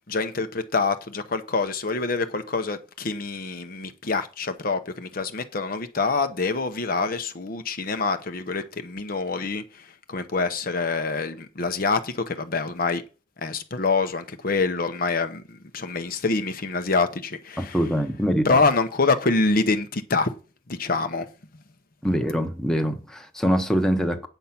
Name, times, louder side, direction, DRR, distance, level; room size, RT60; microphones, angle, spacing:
voice 1, 0.1-13.0 13.4-17.8 18.4-20.3 20.7-21.3, left 3 dB, 45° left, 0.8 m, -26 dB
voice 2, 17.6-18.5 22.0-24.3, equal, 5° left, 1.0 m, -24 dB
9.1 x 6.9 x 5.9 m
head